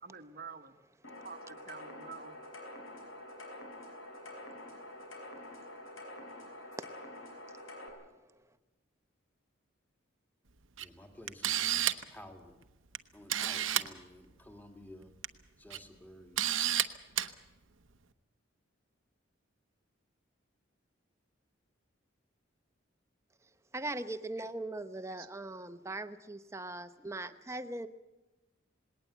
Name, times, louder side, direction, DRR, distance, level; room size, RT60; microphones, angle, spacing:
voice 1, 0.0-0.8 1.2-2.4 25.1-25.3, right 5 dB, 45° right, 8 dB, 1.1 m, -48 dB
sound 1, 1.0-7.9, left 1 dB, 85° left, 5.6 m, -47 dB
voice 2, 10.8-12.6 13.1-15.2 15.6-16.5, left 1 dB, 10° left, 5 dB, 2.0 m, -53 dB
Camera, 10.8-10.9 11.3-12.1 12.9-13.0 13.3-13.9 15.0-15.3 15.7-15.8 16.4-16.8 17.2-17.3, right 11 dB, 80° right, 1.0 m, -30 dB
voice 3, 23.7-27.9, right 2 dB, 15° right, 11 dB, 0.8 m, -40 dB
19.5 x 18.5 x 8.1 m, 1.1 s
head